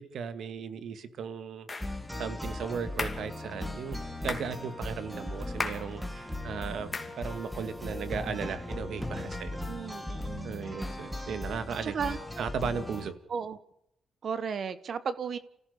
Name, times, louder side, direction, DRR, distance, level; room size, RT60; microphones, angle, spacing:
voice 1, 0.1-1.9 2.2-9.6 10.4-11.9 12.4-13.2, right 6 dB, 70° right, 10 dB, 2.0 m, -36 dB
sound 1, 1.7-2.0 3.0-3.3 4.3-4.5 5.6-5.9 6.9-7.2, left 3 dB, 20° left, 2.6 m, -35 dB
sound 2, 1.8-13.1, left 1 dB, ahead, 2.5 m, -38 dB
voice 2, 9.7-10.8 11.8-12.2 13.3-13.6 14.2-15.4, right 6 dB, 55° right, 13 dB, 1.4 m, -34 dB
29.0 x 15.0 x 6.8 m, 0.79 s
cardioid pair, 120°, 0 cm